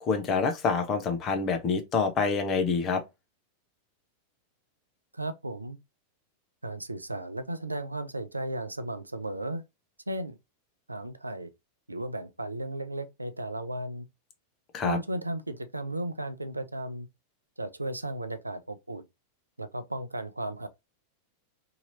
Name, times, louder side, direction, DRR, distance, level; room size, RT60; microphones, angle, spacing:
voice 1, 0.0-3.0 14.7-15.0, left 5 dB, 30° left, 0.8 m, -27 dB
voice 2, 5.1-5.8 6.6-9.6 10.1-10.4 10.9-11.5 11.9-14.1 14.8-17.1 17.6-19.0 19.6-20.7, right 1 dB, 85° right, 0.4 m, -35 dB
2.8 x 2.8 x 2.6 m
figure-of-eight pair, 90°, 0 cm